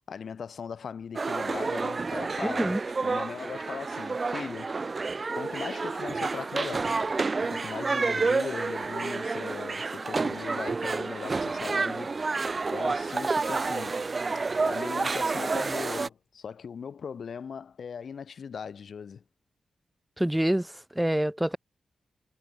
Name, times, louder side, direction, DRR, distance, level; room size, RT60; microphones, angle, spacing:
voice 1, 0.1-4.8 5.3-7.0 7.4-12.1 12.7-14.0 14.7-19.2, left 6 dB, 60° left, 2.3 m, -39 dB
sound 1, 1.2-16.1, right 4 dB, 35° right, 0.4 m, -29 dB
voice 2, 2.4-2.8 20.2-21.6, right 1 dB, 5° right, 1.4 m, -27 dB
cardioid pair, 100°, 0 cm